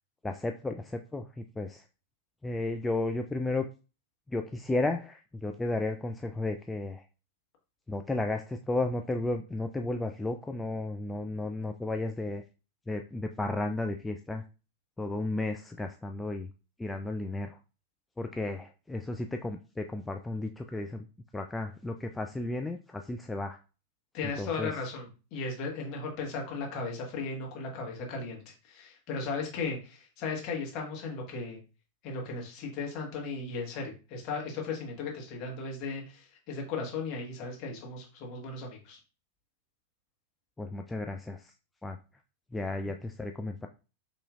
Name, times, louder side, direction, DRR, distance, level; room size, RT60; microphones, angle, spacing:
voice 1, 0.2-1.8 2.4-3.7 4.3-7.0 7.9-12.4 12.9-14.4 15.0-16.5 16.8-17.6 18.2-21.0 21.3-23.6 24.4-24.8 40.6-41.5 41.8-42.0 42.5-43.7, left 2 dB, 10° left, 4 dB, 0.3 m, -33 dB
voice 2, 24.1-28.4 28.7-31.6 32.0-39.0, left 4 dB, 40° left, 0 dB, 1.5 m, -36 dB
5.4 x 3.1 x 2.5 m, 0.32 s
figure-of-eight pair, 90°, 0 cm